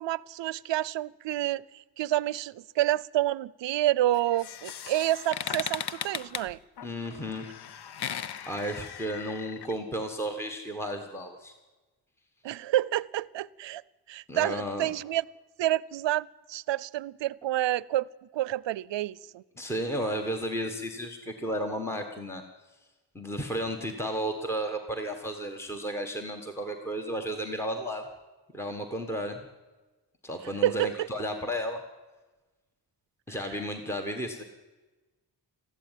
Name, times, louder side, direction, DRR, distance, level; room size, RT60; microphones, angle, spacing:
voice 1, 0.0-6.6 12.4-13.8 14.1-15.3 15.6-19.4 30.5-31.1, right 14 dB, 85° right, 23 dB, 0.6 m, -29 dB
sound 1, 4.1-9.7, left 9 dB, 65° left, 0.8 m, -37 dB
voice 2, 6.8-7.4 8.4-11.6 14.3-14.9 19.6-22.4 23.1-28.1 28.5-29.5 30.2-31.8 33.3-34.4, equal, 5° left, 5 dB, 1.4 m, -33 dB
21.5 x 14.5 x 9.2 m, 1.2 s
wide cardioid pair, 160°, 43 cm